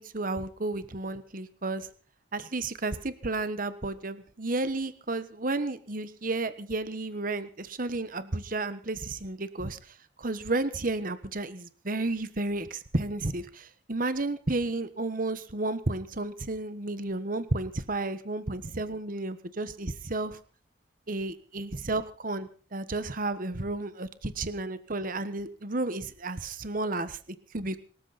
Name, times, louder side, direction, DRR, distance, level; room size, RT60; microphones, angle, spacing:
voice 1, 0.0-1.9 2.3-20.4 21.1-27.2 27.5-27.8, right 2 dB, 45° right, 13 dB, 1.2 m, -32 dB
25.0 x 14.0 x 4.2 m, 0.40 s
head